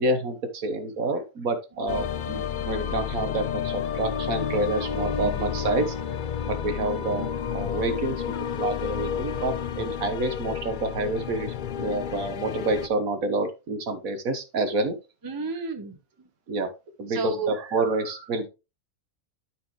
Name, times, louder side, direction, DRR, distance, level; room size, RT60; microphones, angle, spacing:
voice 1, 0.0-5.9 6.5-8.2 8.6-14.9 16.5-16.7 17.0-18.5, right 2 dB, 70° right, 8 dB, 1.6 m, -28 dB
sound 1, 1.9-12.9, left 8 dB, 75° left, 0.4 m, -31 dB
voice 2, 5.2-5.5 15.2-16.3 17.1-17.7, right 2 dB, 15° right, 7 dB, 1.0 m, -33 dB
12.5 x 4.5 x 3.1 m, 0.28 s
omnidirectional pair, 1.5 m